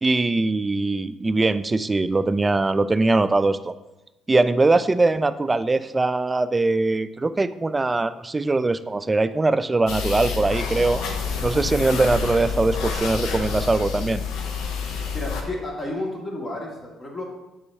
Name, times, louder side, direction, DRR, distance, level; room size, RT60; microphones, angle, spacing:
voice 1, 0.0-3.7 4.3-11.0 11.4-14.2, right 3 dB, 25° right, 13 dB, 0.3 m, -21 dB
sound 1, 9.9-15.4, left 5 dB, 75° left, 0.7 m, -28 dB
voice 2, 15.1-17.2, left 1 dB, 35° left, -2 dB, 1.8 m, -31 dB
6.7 x 5.5 x 2.7 m, 0.98 s
hypercardioid pair, 60°, 0 cm